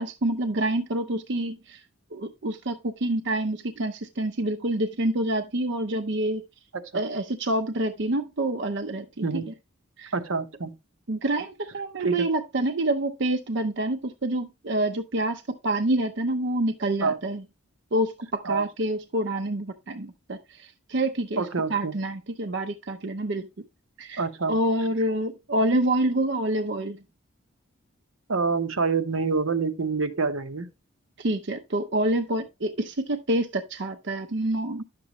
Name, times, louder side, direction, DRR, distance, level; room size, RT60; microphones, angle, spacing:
voice 1, 0.0-1.8 2.1-6.4 6.9-9.5 10.0-10.1 11.1-17.4 17.9-21.4 21.7-23.5 24.0-24.2 24.5-27.0 31.2-34.8, right 1 dB, 60° right, 0.6 m, -27 dB
voice 2, 10.1-10.7 12.0-12.3 17.0-17.2 18.4-18.7 21.4-21.9 24.2-24.5 28.3-30.7, right 4 dB, 85° right, 1.0 m, -26 dB
10.5 x 6.7 x 3.0 m
head